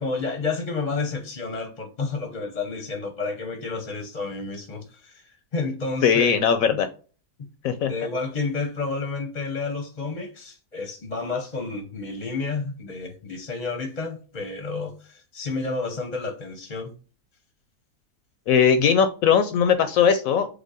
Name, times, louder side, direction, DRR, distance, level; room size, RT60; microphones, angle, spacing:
voice 1, 0.0-6.3 6.7-6.8 7.4-7.5 7.8-16.9, left 3 dB, 40° left, 0.6 m, -30 dB
voice 2, 6.0-6.9 7.6-7.9 18.5-20.5, left 7 dB, 70° left, 0.9 m, -19 dB
5.1 x 2.1 x 4.7 m
omnidirectional pair, 1.7 m